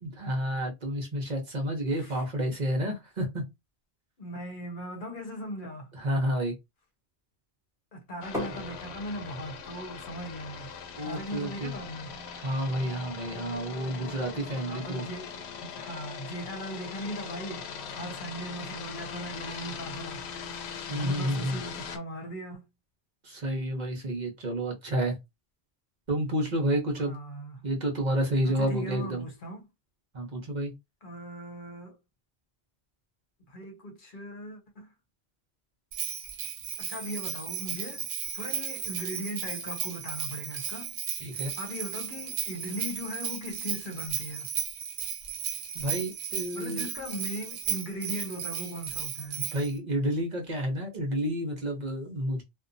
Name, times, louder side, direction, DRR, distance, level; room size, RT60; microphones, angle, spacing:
voice 1, 0.0-3.4 5.9-6.5 11.0-11.7 12.3-15.1 20.9-21.6 23.2-25.2 26.1-27.1 27.6-29.2 30.1-30.7 41.2-41.5 45.7-46.9 49.4-52.4, equal, 45° right, 0.8 m, -30 dB
voice 2, 1.9-2.3 4.2-5.9 7.9-10.7 11.0-12.2 14.7-20.3 20.9-22.7 27.0-27.6 28.4-29.7 31.0-32.0 33.5-34.9 36.8-38.1 38.3-41.0 41.3-44.5 46.5-49.4, equal, 55° left, 0.8 m, -39 dB
sound 1, 8.2-22.0, left 6 dB, 85° left, 0.9 m, -41 dB
sound 2, 8.3-14.0, left 1 dB, 5° right, 0.8 m, -44 dB
Bell, 35.9-49.7, right 8 dB, 85° right, 0.9 m, -35 dB
2.7 x 2.2 x 2.5 m
omnidirectional pair, 1.1 m